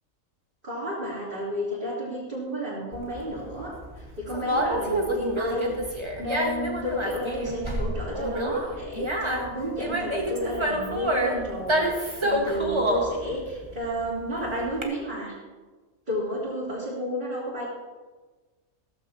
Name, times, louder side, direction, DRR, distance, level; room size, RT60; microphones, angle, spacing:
voice 1, 0.6-15.4 16.1-17.7, equal, 40° right, -8 dB, 3.4 m, -32 dB
Conversation, 2.9-14.8, equal, 20° right, 1.6 m, -28 dB
15.5 x 14.5 x 2.9 m, 1.3 s
omnidirectional pair, 1.3 m